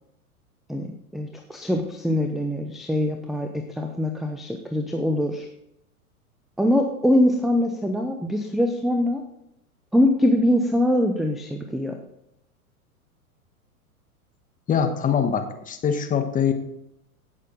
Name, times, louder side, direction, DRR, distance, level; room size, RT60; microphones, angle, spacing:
voice 1, 1.1-5.5 6.6-9.2 9.9-12.0, left 1 dB, ahead, 5 dB, 0.6 m, -23 dB
voice 2, 14.7-16.5, left 7 dB, 20° left, 6 dB, 1.3 m, -23 dB
16.5 x 6.6 x 3.9 m, 0.79 s
hypercardioid pair, 110°, 44 cm